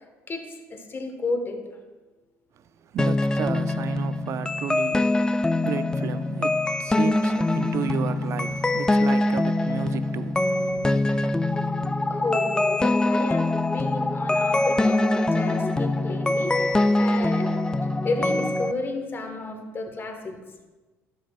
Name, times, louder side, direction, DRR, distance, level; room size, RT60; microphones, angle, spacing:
voice 1, 0.3-1.6 12.1-17.7 18.0-20.4, left 3 dB, 35° left, 1.3 m, -32 dB
voice 2, 2.6-11.3, right 8 dB, 50° right, 0.4 m, -33 dB
sound 1, 3.0-18.7, left 2 dB, 10° left, 0.4 m, -23 dB
12.5 x 6.2 x 2.4 m
hypercardioid pair, 75°, 7 cm